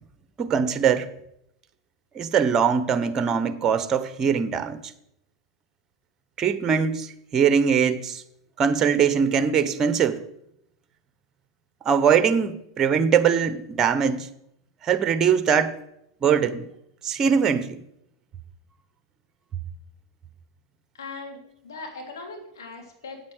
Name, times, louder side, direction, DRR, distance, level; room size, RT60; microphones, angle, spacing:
voice 1, 0.4-1.1 2.1-4.8 6.4-8.2 8.6-10.2 11.8-14.3 14.8-15.7 16.2-16.6 17.0-17.8, right 7 dB, 30° right, 1.1 m, -22 dB
voice 2, 20.9-23.2, left 3 dB, 85° left, 3.0 m, -39 dB
8.7 x 8.5 x 6.4 m
hypercardioid pair, 100°, 2 cm